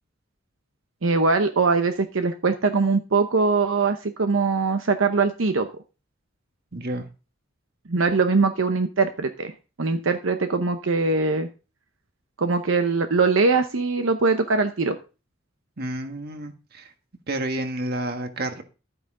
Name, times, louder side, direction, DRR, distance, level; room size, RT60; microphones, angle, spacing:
voice 1, 1.0-5.7 7.9-9.5 9.8-11.5 12.4-15.0, right 4 dB, 80° right, 7 dB, 0.8 m, -22 dB
voice 2, 6.7-7.0 15.8-16.9 17.3-18.6, right 1 dB, 55° right, 6 dB, 1.6 m, -30 dB
12.5 x 9.1 x 3.8 m, 0.32 s
head